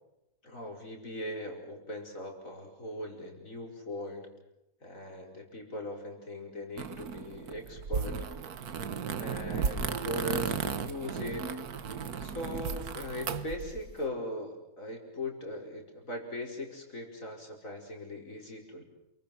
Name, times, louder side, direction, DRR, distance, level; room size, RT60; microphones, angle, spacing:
voice 1, 0.4-4.3 4.8-8.2 9.2-11.6 12.2-18.8, left 1 dB, 60° left, 2 dB, 5.4 m, -39 dB
sound 1, 6.8-13.9, right 6 dB, 85° right, 1.7 m, -35 dB
28.5 x 23.5 x 6.0 m, 0.87 s
omnidirectional pair, 1.6 m